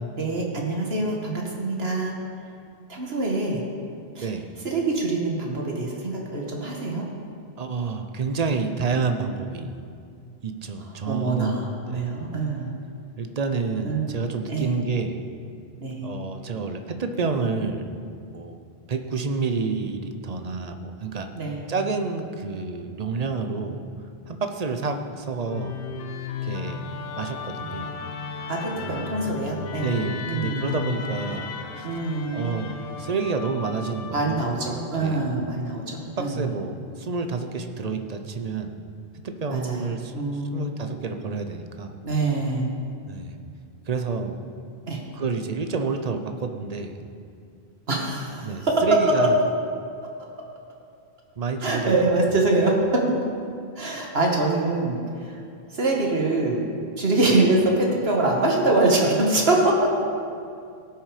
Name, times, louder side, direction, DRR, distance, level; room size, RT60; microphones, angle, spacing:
voice 1, 0.2-2.2 2.9-3.6 4.1-4.3 4.6-7.1 11.1-12.7 13.8-14.1 14.5-14.8 15.8-16.1 21.3-21.6 28.5-29.9 30.3-30.7 31.8-32.5 34.1-36.4 39.5-40.7 42.0-42.7 44.9-45.0 47.9-49.3 51.6-53.1 53.7-55.4 55.7-56.6 57.0-59.9, right 2 dB, 70° right, -1 dB, 1.7 m, -24 dB
voice 2, 7.6-9.8 10.4-11.6 11.9-12.1 13.2-15.2 16.0-17.9 18.3-18.6 18.9-21.3 21.7-23.8 24.3-25.7 26.4-26.8 27.2-27.9 29.7-31.9 32.3-34.4 35.0-35.2 36.1-38.7 39.2-41.9 43.1-43.4 43.9-44.4 45.1-47.0 48.4-49.4 51.4-52.3, right 4 dB, 40° right, 6 dB, 0.8 m, -29 dB
Musical instrument, 25.4-34.7, left 6 dB, 65° left, 0.9 m, -35 dB
18.0 x 6.3 x 5.0 m, 2.4 s
omnidirectional pair, 1.1 m